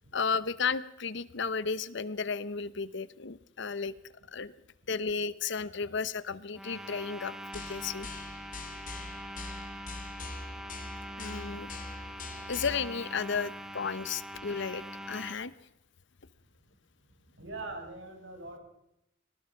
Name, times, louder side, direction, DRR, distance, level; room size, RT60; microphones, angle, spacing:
voice 1, 0.1-4.0 4.3-4.5 4.9-8.1 11.2-11.7 12.5-15.5, left 5 dB, 65° left, 17 dB, 0.9 m, -33 dB
sound 1, 6.5-15.4, equal, 5° right, 1.4 m, -43 dB
sound 2, 7.5-12.9, left 3 dB, 45° left, 2.8 m, -43 dB
voice 2, 17.3-18.6, right 2 dB, 70° right, 3 dB, 6.0 m, -42 dB
24.5 x 18.5 x 5.9 m, 0.83 s
head